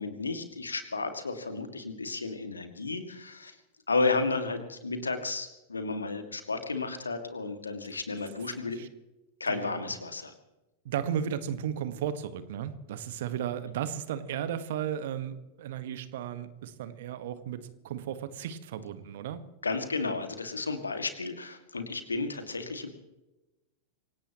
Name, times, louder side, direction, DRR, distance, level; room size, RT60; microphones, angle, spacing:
voice 1, 0.0-3.6 3.9-8.8 9.4-10.3 19.6-22.9, left 3 dB, 75° left, 7 dB, 2.2 m, -32 dB
voice 2, 8.4-8.9 9.5-9.9 10.8-19.4, right 9 dB, 55° right, 12 dB, 1.5 m, -35 dB
26.0 x 17.5 x 3.1 m, 1.0 s
figure-of-eight pair, 90°, 0 cm